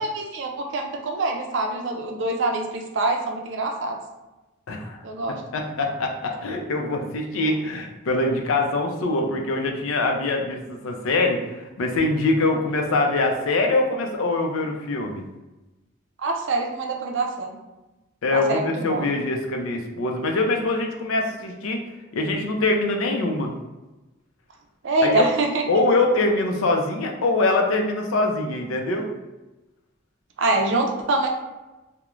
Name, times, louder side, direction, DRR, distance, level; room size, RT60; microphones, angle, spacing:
voice 1, 0.0-4.0 5.0-5.4 16.2-17.5 18.3-19.1 24.8-25.6 30.4-31.3, right 2 dB, 65° right, 3 dB, 0.4 m, -25 dB
voice 2, 4.7-5.0 5.3-15.2 18.2-21.8 22.1-23.5 25.0-25.2 25.7-29.1, left 2 dB, 90° left, 3 dB, 0.4 m, -23 dB
3.0 x 2.0 x 2.4 m, 1.1 s
head